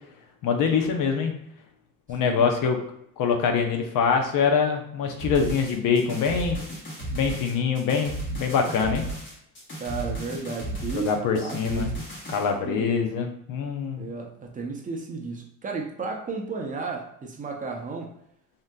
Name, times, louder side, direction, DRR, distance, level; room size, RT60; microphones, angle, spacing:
voice 1, 0.4-1.3 2.1-2.8 3.2-6.6 7.1-9.0 10.9-11.9 12.3-14.1, left 6 dB, 90° left, 4 dB, 0.7 m, -24 dB
voice 2, 2.1-2.5 9.8-12.0 12.6-12.9 14.0-18.1, right 4 dB, 25° right, 1 dB, 0.5 m, -33 dB
sound 1, 5.2-12.5, right 2 dB, 35° left, 1.1 m, -34 dB
3.6 x 2.6 x 2.2 m, 0.76 s
cardioid pair, 150°, 32 cm